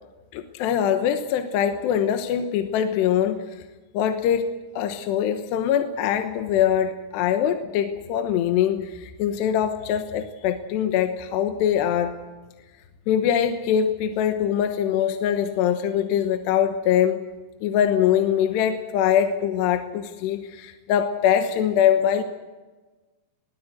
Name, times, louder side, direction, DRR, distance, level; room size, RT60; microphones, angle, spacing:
voice 1, 0.3-3.4 3.9-12.1 13.1-17.2 17.6-22.2, left 9 dB, 75° left, 7 dB, 3.1 m, -23 dB
22.5 x 17.0 x 8.0 m, 1.2 s
omnidirectional pair, 5.2 m